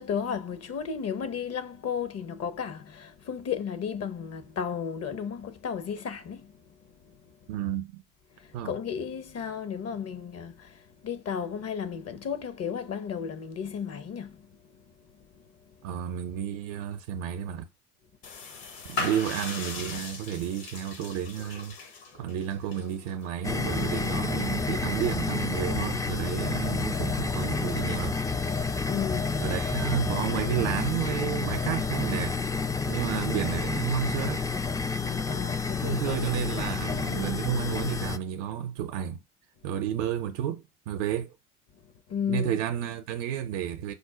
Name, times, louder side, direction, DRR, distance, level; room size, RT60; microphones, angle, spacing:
voice 1, 0.0-6.5 8.6-14.5 28.9-29.4 35.0-36.3 42.1-42.6, left 7 dB, 40° left, 0.8 m, -34 dB
voice 2, 7.5-8.0 8.5-8.7 15.8-17.7 18.9-21.8 22.2-28.2 29.4-32.4 32.8-34.4 35.8-39.2 39.6-41.3 42.3-43.9, right 10 dB, 75° right, 0.6 m, -31 dB
sound 1, 18.2-24.9, left 4 dB, 65° left, 1.4 m, -39 dB
sound 2, 23.4-38.2, left 4 dB, 10° left, 0.4 m, -30 dB
5.2 x 2.1 x 4.8 m
hypercardioid pair, 55°, 37 cm